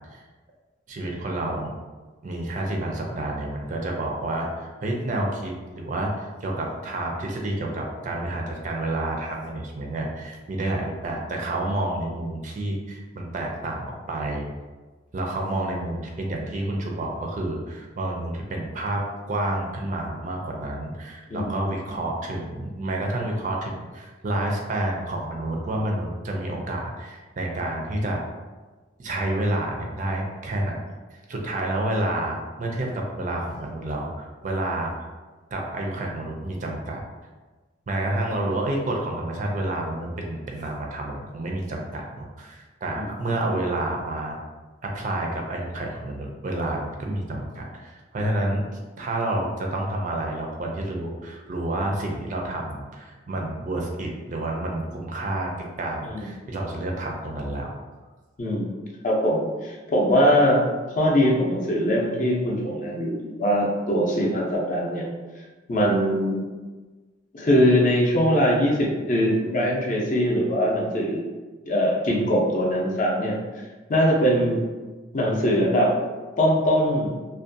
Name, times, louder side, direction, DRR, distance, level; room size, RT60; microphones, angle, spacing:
voice 1, 0.9-1.7 2.2-14.5 15.1-28.2 29.0-30.8 31.1-34.9 35.5-37.0 37.9-44.4 44.8-48.6 49.0-57.7, right 1 dB, 45° right, 0 dB, 0.4 m, -29 dB
voice 2, 58.4-58.7 59.0-60.6 61.0-65.1 65.7-66.4 67.3-71.2 71.7-73.4 73.9-74.6 75.1-75.9 76.4-77.1, equal, 45° left, -2 dB, 0.5 m, -21 dB
2.5 x 2.2 x 2.5 m, 1.3 s
head